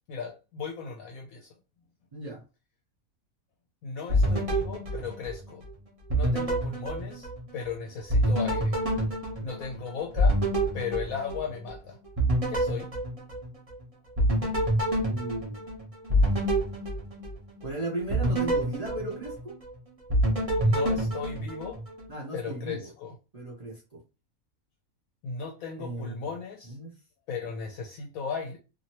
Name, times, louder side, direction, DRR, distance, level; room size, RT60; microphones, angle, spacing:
voice 1, 0.1-1.5 3.8-5.6 6.1-7.3 7.5-8.7 9.4-10.4 10.7-12.0 12.5-12.9 20.6-21.8 22.3-23.1 25.2-26.7 27.3-28.6, left 6 dB, 70° left, 1 dB, 1.0 m, -36 dB
voice 2, 2.1-2.4 15.0-15.7 17.6-19.6 22.1-22.9 23.3-24.0 25.8-26.3 26.7-26.9, right 2 dB, 55° right, -3 dB, 0.4 m, -36 dB
sound 1, 4.1-5.7 6.1-7.7 8.1-11.8 12.2-13.8 14.2-17.6 18.1-19.7 20.1-22.1, right 1 dB, 30° right, 0.7 m, -27 dB
2.8 x 2.6 x 2.8 m, 0.31 s
omnidirectional pair, 1.6 m